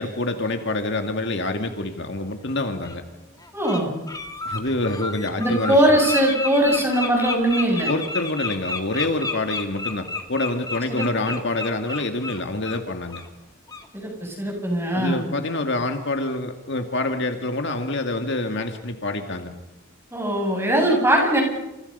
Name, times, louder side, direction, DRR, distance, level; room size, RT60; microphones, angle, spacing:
voice 1, 0.0-3.0 4.5-5.8 7.9-13.2 14.9-19.5, left 2 dB, 55° left, 6 dB, 2.1 m, -26 dB
Bird, 2.8-3.0 3.4-3.8 4.1-12.8 13.1-13.3 13.7-13.9, left 3 dB, 15° left, 2.2 m, -31 dB
voice 2, 3.5-3.9 5.4-7.9 10.9-11.3 13.9-15.2 20.1-21.4, right 1 dB, 10° right, 1 dB, 7.9 m, -21 dB
29.5 x 28.5 x 5.6 m, 0.93 s
head